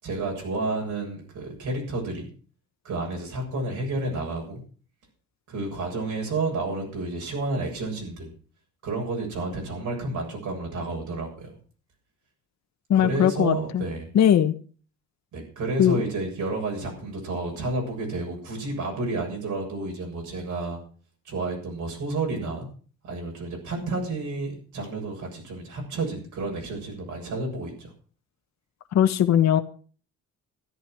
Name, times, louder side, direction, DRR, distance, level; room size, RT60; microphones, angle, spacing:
voice 1, 0.0-2.3 2.8-4.6 5.5-8.3 8.8-11.5 12.9-14.1 15.3-20.8 21.2-22.7 23.0-27.9, right 2 dB, 75° right, 1 dB, 7.2 m, -30 dB
voice 2, 12.9-13.8 14.1-14.5 15.8-16.0 28.9-29.6, left 10 dB, 65° left, 7 dB, 1.3 m, -19 dB
13.5 x 10.5 x 6.0 m, 0.41 s
cardioid pair, 90°, 30 cm